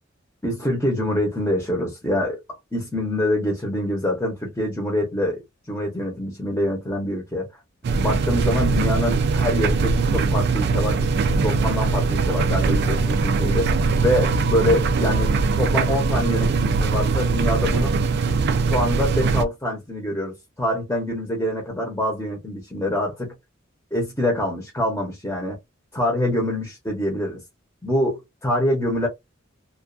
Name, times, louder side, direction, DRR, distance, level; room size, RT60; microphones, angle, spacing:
voice 1, 0.4-5.4 5.7-7.5 7.9-18.0 18.7-23.3 23.9-25.6 25.9-27.4 27.8-29.1, left 1 dB, 10° left, 0.7 m, -25 dB
sound 1, 7.8-19.5, right 4 dB, 55° right, 0.3 m, -21 dB
2.3 x 2.3 x 2.4 m
head